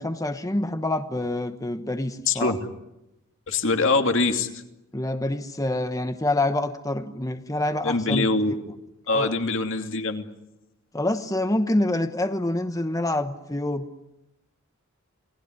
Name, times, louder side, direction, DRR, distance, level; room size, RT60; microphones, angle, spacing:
voice 1, 0.0-2.5 4.9-8.3 9.1-9.3 10.9-13.9, left 1 dB, 15° left, 8 dB, 1.1 m, -26 dB
voice 2, 2.3-2.6 3.5-4.5 7.8-8.6 9.1-10.3, left 3 dB, 60° left, 6 dB, 2.8 m, -23 dB
28.5 x 19.5 x 9.9 m, 0.92 s
head